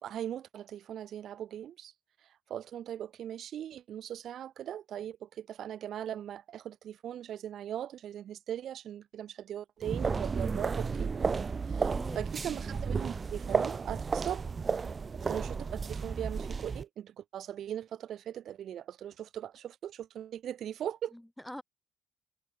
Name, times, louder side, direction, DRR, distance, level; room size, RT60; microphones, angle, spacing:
voice 1, 0.0-1.9 2.2-11.1 11.7-14.5 15.2-21.1, right 10 dB, 70° right, 3.5 m, -40 dB
sound 1, 9.8-16.8, right 5 dB, 35° right, 1.4 m, -33 dB
voice 2, 11.7-12.3 21.1-21.6, left 1 dB, 5° left, 6.2 m, -44 dB
cardioid pair, 85°, 0 cm